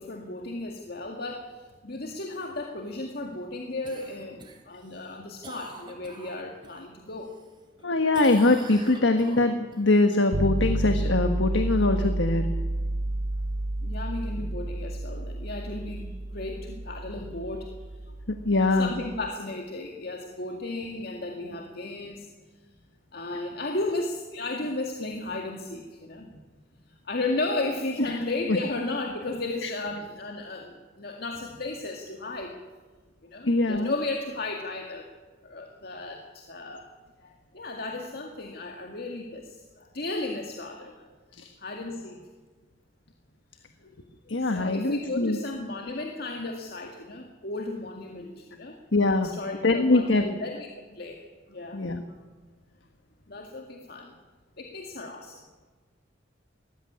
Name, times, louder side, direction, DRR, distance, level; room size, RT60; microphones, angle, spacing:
voice 1, 0.0-7.4 13.8-17.8 18.8-22.3 23.1-26.4 26.9-32.6 33.2-35.1 35.4-36.8 37.2-41.1 41.6-42.2 43.6-43.7 44.4-48.8 49.2-51.2 51.5-52.0 53.3-54.1 54.6-55.4, left 2 dB, 55° left, 3 dB, 2.1 m, -34 dB
Cough, 3.8-6.8 7.2-7.8 8.1-9.8 14.2-14.3, right 3 dB, 25° right, 3.3 m, -46 dB
voice 2, 7.8-12.5 18.3-18.9 28.5-28.6 29.6-29.7 33.5-33.9 41.4-41.5 44.3-45.4 48.9-49.3 49.6-50.4 51.7-52.0, left 2 dB, 85° left, 7 dB, 1.4 m, -23 dB
sound 1, 10.3-19.3, right 1 dB, 80° right, 1.2 m, -30 dB
20.0 x 14.5 x 9.8 m, 1.4 s
head